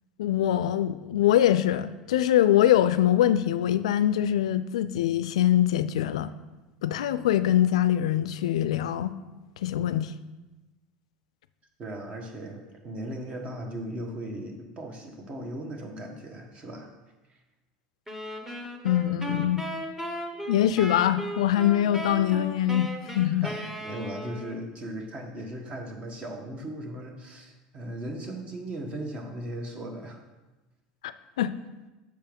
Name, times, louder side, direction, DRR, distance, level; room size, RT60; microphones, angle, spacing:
voice 1, 0.2-6.3 6.8-9.1 9.6-10.1 18.8-19.6 20.5-23.5 31.4-31.5, left 11 dB, 85° left, 13 dB, 0.3 m, -23 dB
voice 2, 11.8-16.9 23.4-30.2, right 1 dB, 35° right, 3 dB, 1.3 m, -37 dB
sound 1, 18.1-24.6, equal, 10° right, 1.0 m, -36 dB
6.3 x 4.5 x 5.2 m, 1.1 s
hypercardioid pair, 90°, 3 cm